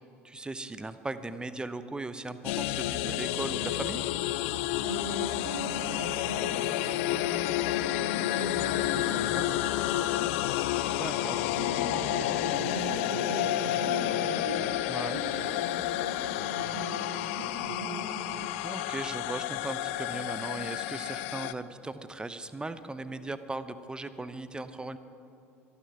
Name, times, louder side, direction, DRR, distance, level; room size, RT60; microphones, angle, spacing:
voice 1, 0.2-4.0 9.1-9.5 11.0-11.4 14.9-15.2 18.6-25.0, right 2 dB, 10° right, 13 dB, 0.7 m, -38 dB
sound 1, 2.4-21.5, left 14 dB, 60° left, 0.4 m, -30 dB
voice 2, 4.8-10.2 11.4-18.4, right 1 dB, 65° right, -4 dB, 2.3 m, -39 dB
28.0 x 9.6 x 3.5 m, 2.8 s
figure-of-eight pair, 65°, 8 cm